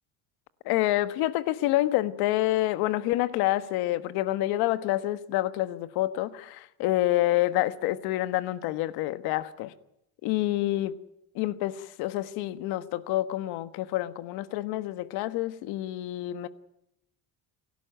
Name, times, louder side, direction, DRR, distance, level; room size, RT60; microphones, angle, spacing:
voice 1, 0.6-9.7 10.2-10.9 11.3-16.5, left 15 dB, 80° left, 1.4 m, -28 dB
29.5 x 12.0 x 9.1 m
cardioid pair, 145°, 37 cm